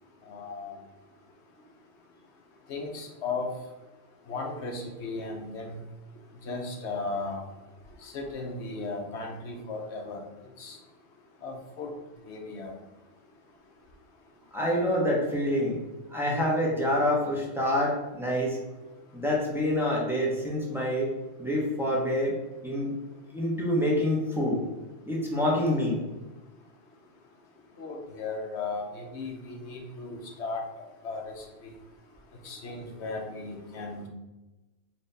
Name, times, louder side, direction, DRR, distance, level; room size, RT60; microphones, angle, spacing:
voice 1, 0.2-0.8 2.7-3.5 4.3-5.8 6.4-7.4 8.0-10.2 10.6-10.8 11.4-11.9 12.3-12.7 27.8-30.6 31.0-31.7 32.4-34.1, left 3 dB, 65° left, 1 dB, 1.0 m, -36 dB
voice 2, 14.5-15.8 16.1-18.6 19.1-21.1 21.4-22.3 22.6-22.9 23.3-24.6 25.1-26.0, left 1 dB, ahead, -5 dB, 1.0 m, -26 dB
4.3 x 2.8 x 3.9 m, 1.1 s
omnidirectional pair, 1.3 m